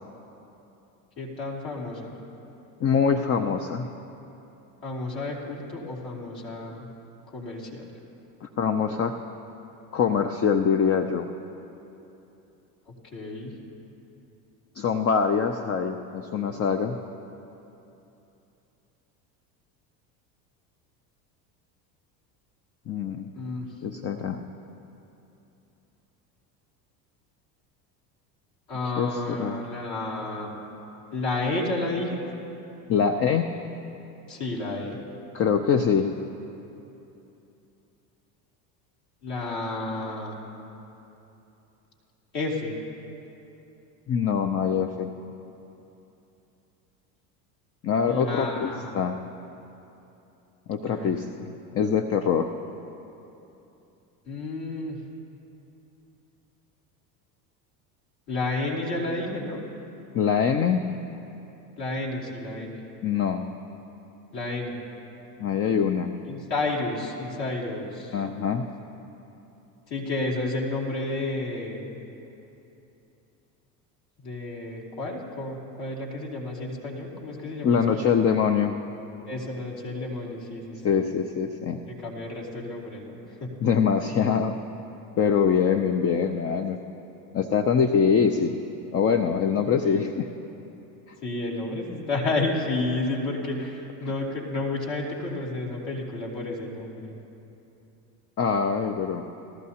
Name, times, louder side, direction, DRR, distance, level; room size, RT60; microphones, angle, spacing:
voice 1, 1.2-2.2 4.8-6.9 7.3-7.9 13.1-13.5 23.3-23.7 28.7-30.5 31.1-32.2 34.3-35.0 39.2-40.4 42.3-42.8 48.1-49.0 50.8-51.2 54.3-55.0 58.3-59.6 61.8-62.9 64.3-64.8 66.3-68.2 69.9-71.9 74.2-78.1 79.3-81.0 81.9-83.5 89.8-90.0 91.2-97.2, left 2 dB, 55° left, -3 dB, 3.0 m, -31 dB
voice 2, 2.8-3.9 8.4-9.1 9.9-11.3 14.8-17.0 22.9-23.3 23.8-24.4 29.0-29.6 32.9-33.5 35.3-36.1 44.1-45.1 47.8-49.2 50.7-52.5 60.1-60.8 63.0-63.5 65.4-66.1 68.1-68.7 77.6-78.8 80.8-81.8 83.6-84.6 85.2-86.8 87.3-88.6 88.9-90.3 98.4-99.2, left 6 dB, 30° left, 7 dB, 0.6 m, -24 dB
19.0 x 14.0 x 2.9 m, 2.9 s
hypercardioid pair, 85°, 47 cm